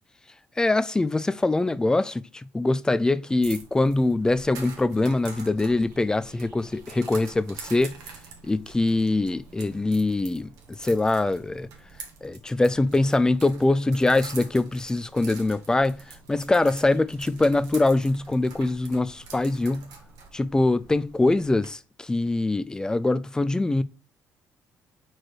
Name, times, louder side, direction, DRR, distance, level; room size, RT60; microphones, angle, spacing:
voice 1, 0.6-8.0 8.5-11.7 12.2-19.9 20.3-23.8, left 2 dB, 10° left, 0.4 m, -23 dB
sound 1, 3.4-21.6, right 5 dB, 85° right, 1.5 m, -46 dB
4.6 x 4.6 x 4.6 m
cardioid pair, 105°, 6 cm